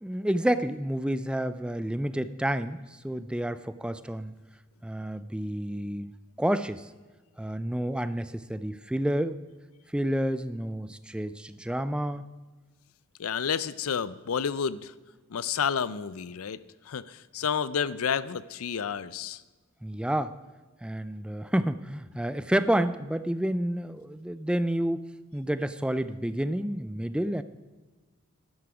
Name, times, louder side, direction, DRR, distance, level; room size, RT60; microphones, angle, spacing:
voice 1, 0.0-2.8 3.0-4.3 4.8-6.1 6.4-6.9 7.4-9.4 9.9-12.3 19.8-20.3 20.8-27.4, right 1 dB, 5° right, 13 dB, 0.4 m, -29 dB
voice 2, 13.2-14.9 15.3-16.6 16.9-19.4, left 7 dB, 85° left, 17 dB, 0.5 m, -30 dB
12.0 x 11.5 x 5.0 m, 1.3 s
head